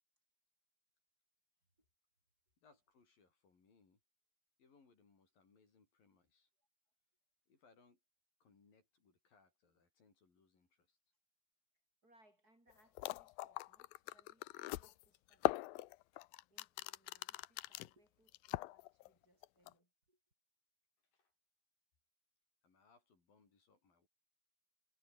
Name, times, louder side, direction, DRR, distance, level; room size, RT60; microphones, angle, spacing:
voice 1, 2.6-4.0 4.6-6.5 7.5-8.0 8.4-11.0 21.1-21.3 22.6-24.1, left 4 dB, 70° left, 7.5 m, -71 dB
voice 2, 12.0-20.2, right 1 dB, 25° right, 7.5 m, -73 dB
sound 1, 12.7-12.8 13.0-17.9 18.3-19.1 19.4-19.7, left 19 dB, 85° left, 2.4 m, -40 dB
omnidirectional pair, 4.2 m